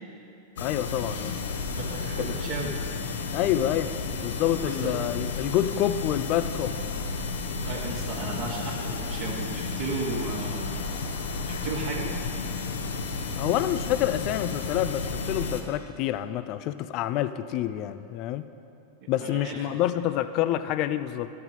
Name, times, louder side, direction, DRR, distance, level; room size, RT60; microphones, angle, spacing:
sound 1, 0.6-15.6, left 4 dB, 60° left, 0.8 m, -32 dB
voice 1, 0.6-1.3 2.2-2.3 3.3-3.9 4.2-6.7 13.4-18.4 19.1-21.3, left 12 dB, 40° left, 13 dB, 0.3 m, -27 dB
voice 2, 1.7-2.8 4.7-5.0 7.6-10.9 11.5-12.2 19.0-19.8, right 4 dB, 45° right, -4 dB, 1.3 m, -35 dB
13.0 x 7.4 x 4.1 m, 2.7 s
figure-of-eight pair, 90°, 0 cm